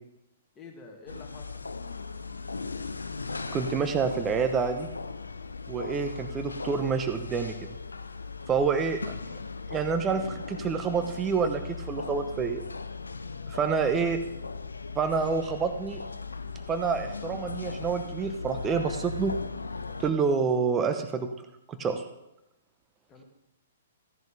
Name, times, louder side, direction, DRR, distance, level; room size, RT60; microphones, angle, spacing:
voice 1, 0.6-1.6 13.4-13.8 23.1-23.2, left 4 dB, 20° left, 1 dB, 2.1 m, -48 dB
sound 1, 1.1-20.1, left 4 dB, 80° left, 0.6 m, -38 dB
voice 2, 3.5-4.9 5.7-7.5 8.5-9.1 9.7-11.6 11.9-12.6 13.5-14.2 15.0-16.0 16.7-19.3 20.0-21.3 21.7-22.0, right 5 dB, 20° right, 7 dB, 0.9 m, -27 dB
15.5 x 10.5 x 3.4 m, 0.86 s
figure-of-eight pair, 120°, 0 cm